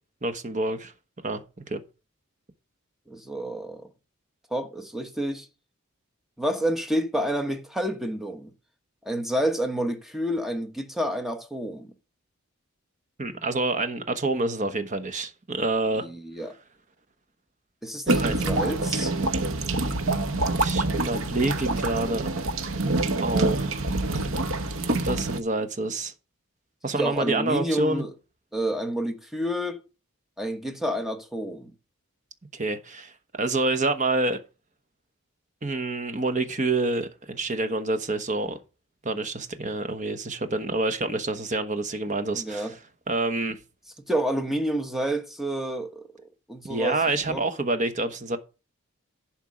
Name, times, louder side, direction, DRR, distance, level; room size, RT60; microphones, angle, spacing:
voice 1, 0.2-0.9 1.2-1.4 1.7-1.8 13.2-16.1 18.2-18.4 20.5-22.3 23.2-24.0 24.9-26.1 26.8-28.0 32.5-33.1 33.4-34.4 35.6-38.6 39.0-42.8 43.1-43.6 46.7-48.4, right 2 dB, 35° right, 1.1 m, -27 dB
voice 2, 3.1-3.9 4.5-5.5 6.4-8.5 9.0-11.9 15.9-16.6 17.8-19.2 27.0-28.1 28.5-29.8 30.4-31.7 42.3-42.7 44.1-47.0 47.3-47.4, right 1 dB, ahead, 1.1 m, -29 dB
sound 1, 18.1-25.4, right 2 dB, 70° right, 0.9 m, -26 dB
11.0 x 4.5 x 6.3 m
head